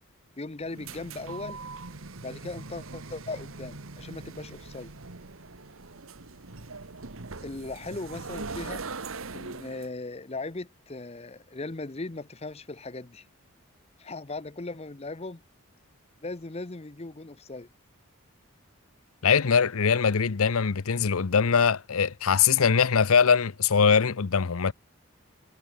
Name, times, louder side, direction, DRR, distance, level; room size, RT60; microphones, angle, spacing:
voice 1, 0.4-1.6 2.2-4.9 7.4-8.8 9.3-13.3 14.0-15.4 16.2-17.7, left 2 dB, 30° left, 0.8 m, -38 dB
sound 1, 0.6-9.9, right 3 dB, 75° right, 1.4 m, -41 dB
voice 2, 19.2-24.7, left 6 dB, 90° left, 0.7 m, -22 dB
head